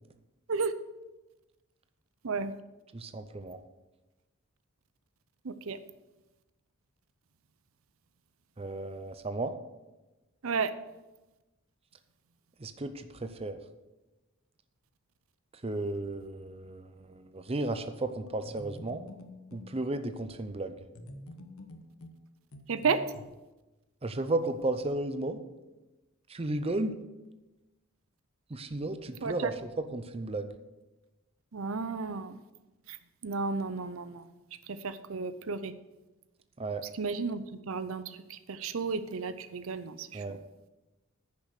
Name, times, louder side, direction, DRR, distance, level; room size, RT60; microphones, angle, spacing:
voice 1, 2.2-2.5 5.4-5.8 10.4-10.7 22.7-23.0 29.2-29.5 31.5-32.4 32.9-33.0 33.2-34.2 34.7-35.7 37.0-40.4, right 4 dB, 70° right, 13 dB, 0.6 m, -33 dB
voice 2, 2.9-3.6 8.6-9.5 12.6-13.6 15.5-19.0 19.5-20.8 24.0-25.4 26.3-27.0 28.5-30.5 36.6-36.8 40.1-40.4, right 2 dB, 25° right, 9 dB, 0.6 m, -34 dB
sound 1, 18.3-19.7 20.9-23.3, left 1 dB, 85° left, 1.2 m, -47 dB
10.0 x 6.9 x 6.5 m, 1.1 s
head